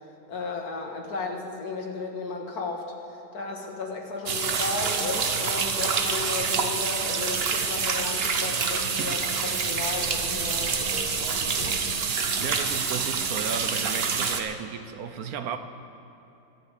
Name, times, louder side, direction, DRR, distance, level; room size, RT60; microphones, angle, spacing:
voice 1, 0.3-2.9 3.3-11.8, left 3 dB, 90° left, 2.2 m, -34 dB
sound 1, 4.3-14.4, right 5 dB, 50° right, 0.9 m, -27 dB
voice 2, 12.4-15.6, right 7 dB, 75° right, 1.3 m, -34 dB
23.0 x 12.5 x 3.6 m
omnidirectional pair, 1.6 m